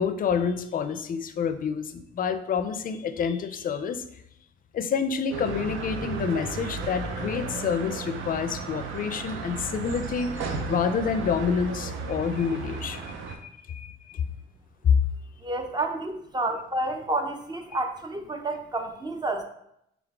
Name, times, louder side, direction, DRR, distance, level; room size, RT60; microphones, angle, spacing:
voice 1, 0.0-4.0 4.7-13.4 13.7-14.3 14.8-15.0, left 6 dB, 45° left, 10 dB, 0.4 m, -28 dB
sound 1, 5.3-13.4, right 4 dB, 80° right, 0.6 m, -34 dB
voice 2, 15.4-19.4, right 2 dB, 20° right, 5 dB, 0.5 m, -30 dB
3.7 x 3.4 x 3.5 m, 0.77 s
cardioid pair, 90°, 20 cm